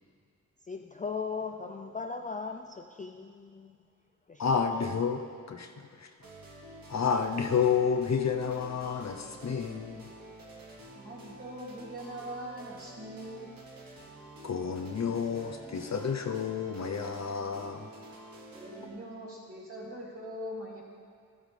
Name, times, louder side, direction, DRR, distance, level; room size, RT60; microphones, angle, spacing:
voice 1, 0.7-3.8 4.3-4.4, left 5 dB, 25° left, 4 dB, 0.4 m, -38 dB
voice 2, 4.4-5.2 5.5-5.7 6.0-6.1 6.9-10.1 14.4-17.9, left 6 dB, 50° left, 4 dB, 0.7 m, -30 dB
sound 1, 6.2-18.9, right 1 dB, 80° right, 1.7 m, -49 dB
voice 3, 10.9-13.5 18.5-20.8, equal, 40° right, -5 dB, 2.5 m, -42 dB
14.0 x 8.9 x 3.3 m, 2.1 s
wide cardioid pair, 90°, 34 cm